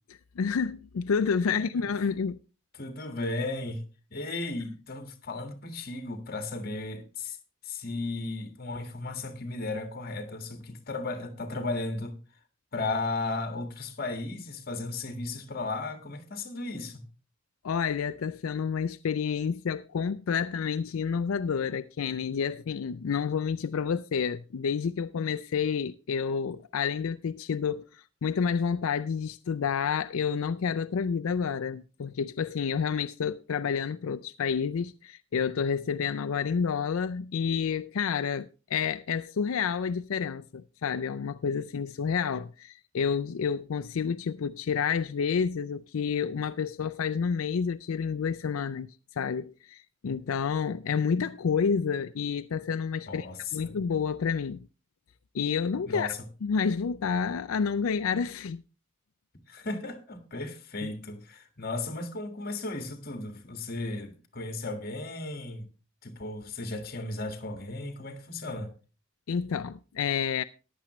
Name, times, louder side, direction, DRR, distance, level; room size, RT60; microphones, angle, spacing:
voice 1, 0.4-2.4 17.6-53.3 53.5-54.7 55.3-56.1 56.4-58.6 60.8-60.9 69.3-70.4, left 6 dB, 85° left, 0.4 m, -29 dB
voice 2, 1.5-2.1 2.7-3.9 4.1-7.4 7.6-12.2 12.7-17.1 53.1-53.7 55.9-56.3 59.5-65.7 66.0-68.7, left 2 dB, 45° left, 1.7 m, -35 dB
14.5 x 10.5 x 3.1 m
head